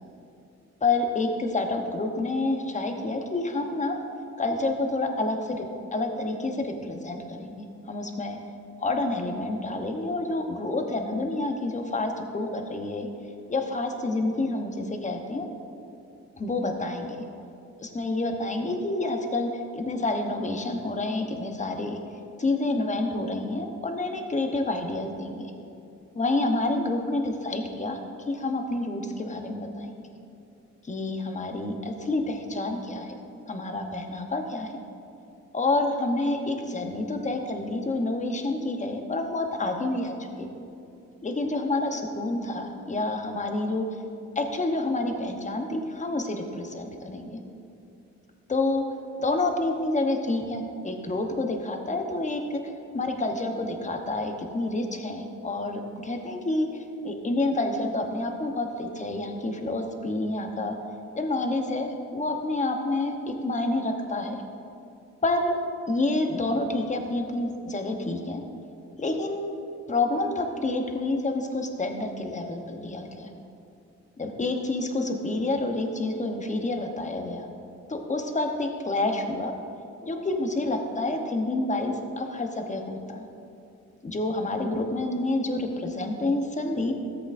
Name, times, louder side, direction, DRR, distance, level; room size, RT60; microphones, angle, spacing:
voice 1, 0.8-4.0 4.4-5.6 5.9-8.4 8.8-13.1 13.5-15.5 16.4-17.2 17.8-22.0 22.4-25.5 26.1-28.0 28.3-29.9 30.8-33.1 33.5-34.8 35.5-40.5 41.2-43.9 44.3-47.3 48.5-48.8 49.2-52.6 52.9-56.7 57.0-60.8 61.2-63.2 63.4-64.4 65.2-65.6 65.9-68.4 69.0-69.5 69.9-73.3 74.2-77.5 77.9-79.5 80.0-83.3 84.0-86.9, left 2 dB, 25° left, 4 dB, 1.0 m, -28 dB
14.0 x 8.0 x 2.6 m, 2.6 s
cardioid pair, 90°, 30 cm